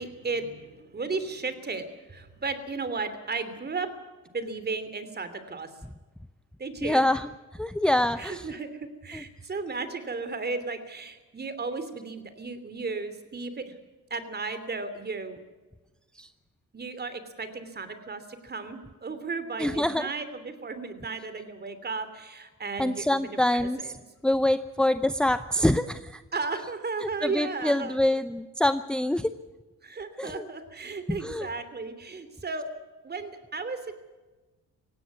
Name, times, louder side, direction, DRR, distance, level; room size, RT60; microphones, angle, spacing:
voice 1, 0.0-3.9 4.3-5.7 6.6-7.1 8.2-13.7 14.1-15.4 16.7-24.0 26.3-28.0 29.8-32.7 33.0-33.9, right 4 dB, 35° right, 11 dB, 3.0 m, -34 dB
voice 2, 6.8-7.3 7.6-8.4 16.2-16.3 19.6-20.1 22.8-23.8 24.2-26.2 27.2-29.3 30.2-30.4 31.2-31.5, left 1 dB, 5° left, 12 dB, 0.6 m, -25 dB
18.0 x 16.0 x 9.5 m, 1.2 s
cardioid pair, 90°, 30 cm